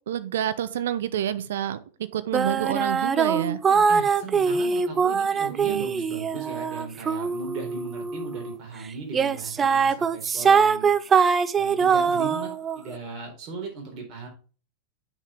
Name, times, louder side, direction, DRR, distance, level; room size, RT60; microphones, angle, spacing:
voice 1, 0.1-1.8 2.1-3.6 5.6-5.9, right 10 dB, 60° right, 12 dB, 0.8 m, -28 dB
sound 1, 2.3-8.5 9.1-12.8, right 6 dB, 20° right, 0.5 m, -23 dB
voice 2, 3.6-10.9 11.5-14.3, right 4 dB, 40° right, 1 dB, 4.2 m, -38 dB
8.7 x 6.5 x 3.7 m, 0.36 s
figure-of-eight pair, 90°, 0 cm